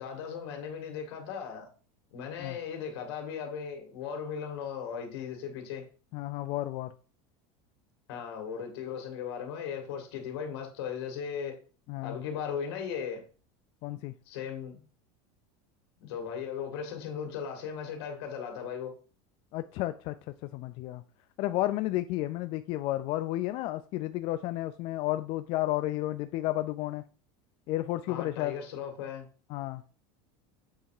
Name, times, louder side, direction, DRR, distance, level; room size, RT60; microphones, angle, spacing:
voice 1, 0.0-1.7 2.1-5.9 8.1-11.6 12.0-13.2 14.3-14.8 16.0-18.9 28.1-29.3, left 7 dB, 85° left, 2.2 m, -37 dB
voice 2, 6.1-6.9 11.9-12.2 13.8-14.1 19.5-21.0 21.4-27.0 27.7-28.6 29.5-29.8, left 16 dB, 45° left, 0.4 m, -32 dB
7.8 x 3.4 x 4.8 m
supercardioid pair, 155°, 13 cm